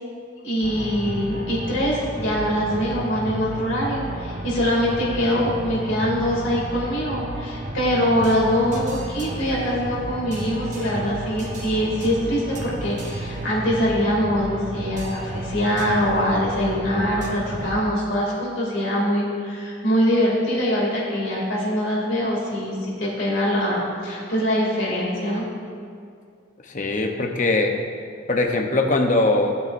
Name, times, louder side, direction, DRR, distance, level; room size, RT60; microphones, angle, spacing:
voice 1, 0.4-25.5, equal, 70° left, -5 dB, 2.6 m, -23 dB
sound 1, 0.6-17.7, right 1 dB, 40° right, 1.0 m, -32 dB
voice 2, 26.7-27.7 28.3-29.5, left 2 dB, 40° left, 3 dB, 0.8 m, -21 dB
15.5 x 7.7 x 2.6 m, 2.3 s
head